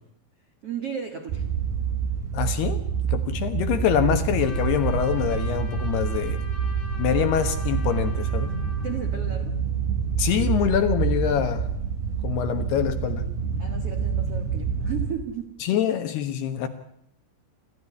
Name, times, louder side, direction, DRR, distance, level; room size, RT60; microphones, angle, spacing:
voice 1, 0.6-1.5 8.5-9.6 13.6-15.6, right 7 dB, 85° right, 6 dB, 1.3 m, -35 dB
sound 1, 1.3-15.1, right 7 dB, 55° right, 3.1 m, -27 dB
voice 2, 2.3-2.8 3.1-6.4 7.0-8.5 10.2-11.7 12.2-13.2 15.6-16.7, left 9 dB, 70° left, 8 dB, 2.7 m, -25 dB
Trumpet, 4.4-9.1, left 1 dB, 20° left, 4.2 m, -43 dB
28.5 x 14.5 x 9.8 m, 0.73 s
omnidirectional pair, 5.9 m